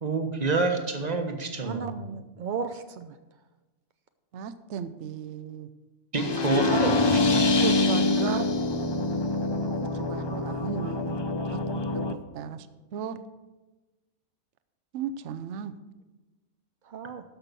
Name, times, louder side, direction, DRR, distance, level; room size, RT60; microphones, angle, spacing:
voice 1, 0.0-1.9 6.1-7.4, right 3 dB, 30° right, 5 dB, 1.2 m, -28 dB
voice 2, 1.6-3.2 6.6-6.8 16.9-17.2, right 6 dB, 85° right, 9 dB, 0.4 m, -35 dB
voice 3, 4.3-5.7 7.6-8.5 9.6-9.7 9.9-11.6 11.9-12.0 12.3-12.7 12.9-13.2 14.9-15.7, right 7 dB, 60° right, 12 dB, 0.9 m, -35 dB
sound 1, 6.1-12.1, left 2 dB, 45° left, 0.3 m, -25 dB
12.5 x 5.8 x 6.8 m, 1.2 s
omnidirectional pair, 1.5 m